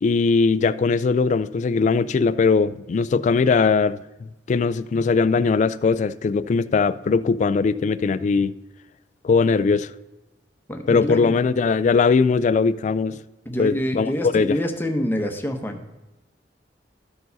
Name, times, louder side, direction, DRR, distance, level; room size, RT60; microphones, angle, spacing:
voice 1, 0.0-8.5 9.2-9.9 10.9-13.2 13.6-14.6, left 4 dB, 45° left, 0.3 m, -20 dB
voice 2, 10.7-11.4 13.5-16.0, left 1 dB, 10° left, 0.9 m, -26 dB
13.0 x 4.6 x 4.0 m
head